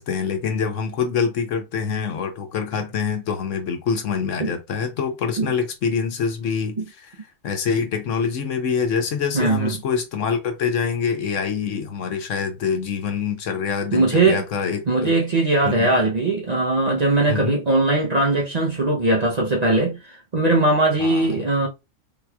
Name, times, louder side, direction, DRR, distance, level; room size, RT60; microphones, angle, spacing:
voice 1, 0.0-7.1 7.4-15.1 15.6-16.0 17.3-17.6 21.0-21.4, left 6 dB, 75° left, 1.0 m, -25 dB
voice 2, 9.3-9.8 13.9-14.4 14.9-21.7, right 2 dB, 45° right, 0.6 m, -20 dB
3.4 x 2.9 x 2.3 m
omnidirectional pair, 1.3 m